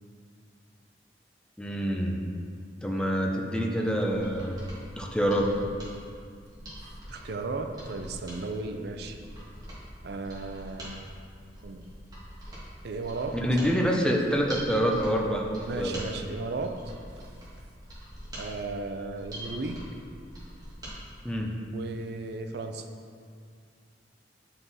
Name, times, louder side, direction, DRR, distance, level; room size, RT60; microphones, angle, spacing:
voice 1, 1.6-2.2 2.8-4.6 5.0-5.5 13.3-15.5 15.8-16.0 21.2-21.5, equal, 5° left, 0 dB, 0.6 m, -26 dB
Mechanisms, 4.0-21.0 21.3-21.4, equal, 20° right, 2.0 m, -44 dB
voice 2, 7.1-9.2 10.0-11.0 11.6-11.8 12.8-13.4 15.7-16.8 18.3-19.9 21.7-22.8, right 3 dB, 65° right, 6 dB, 0.5 m, -35 dB
7.7 x 5.7 x 4.2 m, 2.2 s
head